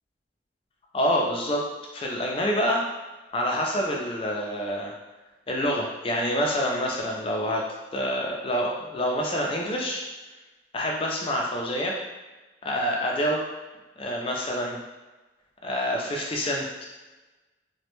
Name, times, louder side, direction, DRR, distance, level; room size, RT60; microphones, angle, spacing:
voice 1, 0.9-1.6 1.9-2.8 3.3-4.9 5.5-7.6 7.9-10.0 10.7-11.9 12.6-13.4 14.0-14.8 15.6-16.7, equal, 30° left, -1 dB, 0.4 m, -27 dB
2.1 x 2.1 x 2.9 m, 1.2 s
head